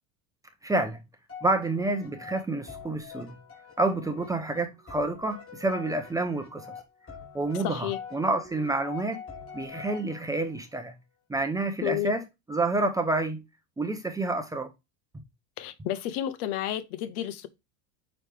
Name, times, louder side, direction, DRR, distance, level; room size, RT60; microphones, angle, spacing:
voice 1, 0.6-1.0 1.4-3.4 3.8-6.8 7.3-9.2 9.5-10.9 11.3-12.2 12.5-13.4 13.8-14.7, right 2 dB, 10° right, 0.5 m, -28 dB
sound 1, 1.3-10.6, left 6 dB, 30° left, 2.8 m, -45 dB
voice 2, 7.6-8.0 11.8-12.1 15.6-17.5, left 12 dB, 85° left, 0.9 m, -31 dB
9.1 x 3.1 x 3.3 m
supercardioid pair, 140°, 43 cm